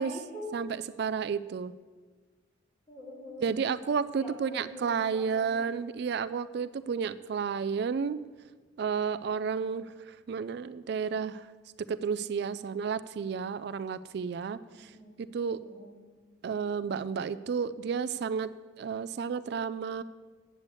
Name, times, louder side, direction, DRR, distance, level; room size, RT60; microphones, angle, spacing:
voice 1, 0.0-0.5 2.9-3.5 4.2-5.6 14.7-15.2 15.6-15.9, left 1 dB, 25° left, -3 dB, 2.9 m, -44 dB
voice 2, 0.5-1.7 3.4-8.2 8.8-11.5 11.9-14.9 15.2-15.6 16.4-18.5 18.8-20.0, right 6 dB, 60° right, 14 dB, 0.3 m, -32 dB
8.3 x 8.1 x 8.2 m, 1.4 s
head